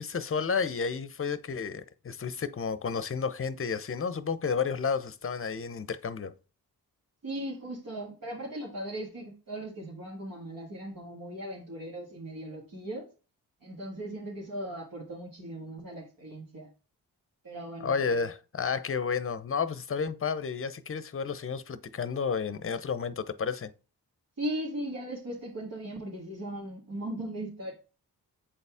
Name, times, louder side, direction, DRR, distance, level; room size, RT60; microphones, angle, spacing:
voice 1, 0.0-6.3 17.8-23.7, left 5 dB, 35° left, 0.7 m, -31 dB
voice 2, 7.2-13.1 13.6-16.7 17.4-17.9 24.4-27.7, right 1 dB, 60° right, 1.9 m, -38 dB
7.6 x 4.2 x 3.5 m
supercardioid pair, 40°, 39 cm